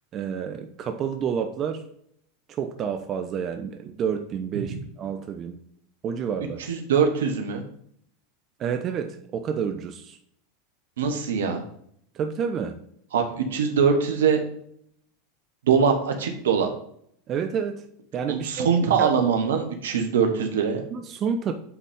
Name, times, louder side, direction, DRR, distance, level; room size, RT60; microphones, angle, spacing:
voice 1, 0.1-1.9 2.5-5.6 6.0-6.6 8.6-10.2 12.1-12.8 17.3-17.8 18.1-19.1 20.9-21.5, right 7 dB, 40° right, 7 dB, 0.6 m, -29 dB
voice 2, 6.7-7.6 11.0-11.6 13.1-14.4 15.7-16.7 18.3-20.8, right 6 dB, 75° right, 5 dB, 1.2 m, -22 dB
8.5 x 4.2 x 3.6 m, 0.68 s
hypercardioid pair, 90°, 0 cm